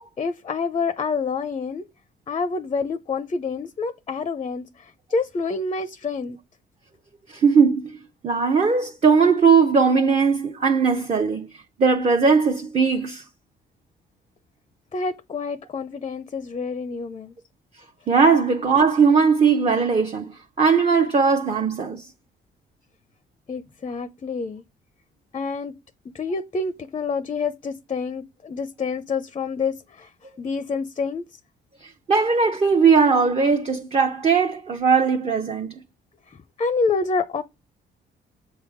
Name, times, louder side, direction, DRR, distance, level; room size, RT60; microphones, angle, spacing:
voice 1, 0.2-1.8 2.3-6.4 14.9-17.3 23.5-24.6 25.3-25.7 26.1-30.1 30.4-31.2 36.3-37.4, left 4 dB, 30° left, 0.5 m, -27 dB
voice 2, 7.3-8.0 8.2-13.2 18.1-22.1 31.8-35.7, right 5 dB, 30° right, 0.7 m, -19 dB
7.2 x 3.6 x 4.8 m
cardioid pair, 90°, 20 cm